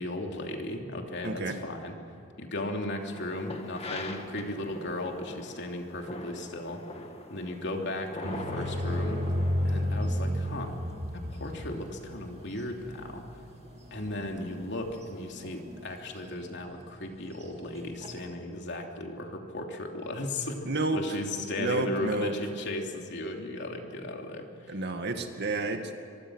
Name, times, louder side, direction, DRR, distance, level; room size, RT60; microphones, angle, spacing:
voice 1, 0.0-2.0 2.4-7.0 7.3-9.2 9.6-10.7 11.1-13.4 13.9-24.8, left 1 dB, 60° left, 2 dB, 3.2 m, -36 dB
voice 2, 1.2-1.6 20.7-21.0 21.6-22.3 24.7-25.9, right 2 dB, 55° right, 6 dB, 2.2 m, -30 dB
sound 1, 3.1-16.3, left 2 dB, 30° left, 2.2 m, -45 dB
sound 2, 8.2-15.0 15.7-16.1 16.4-16.5 16.9-18.3, equal, 35° right, 2.2 m, -32 dB
24.0 x 24.0 x 6.5 m, 2.7 s
head